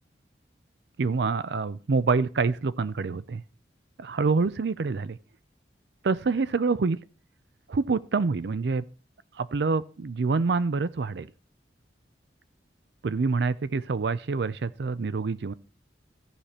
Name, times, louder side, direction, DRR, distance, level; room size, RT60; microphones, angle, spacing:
voice 1, 1.0-3.4 4.0-5.2 6.0-7.0 7.7-8.9 9.4-11.3 13.0-15.5, right 4 dB, 70° right, 0.5 m, -26 dB
14.5 x 5.0 x 4.3 m
head